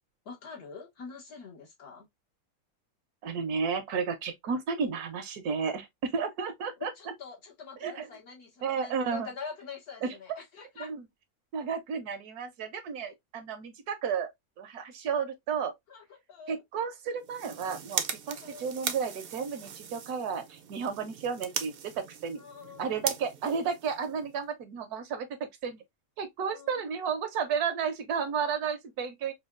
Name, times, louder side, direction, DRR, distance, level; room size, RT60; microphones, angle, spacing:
voice 1, 0.3-2.1 6.8-10.9 13.0-13.1 15.9-16.6 18.3-18.7 22.4-23.0 26.5-26.8, left 5 dB, 85° left, 2.1 m, -45 dB
voice 2, 3.2-6.9 7.8-8.1 8.6-9.3 10.0-10.1 10.8-11.0 11.5-14.3 14.6-15.7 16.5-22.4 22.8-25.8 26.2-29.3, right 6 dB, 85° right, 1.4 m, -32 dB
sound 1, 17.2-24.5, right 7 dB, 60° right, 0.6 m, -39 dB
5.4 x 2.3 x 2.4 m
omnidirectional pair, 1.6 m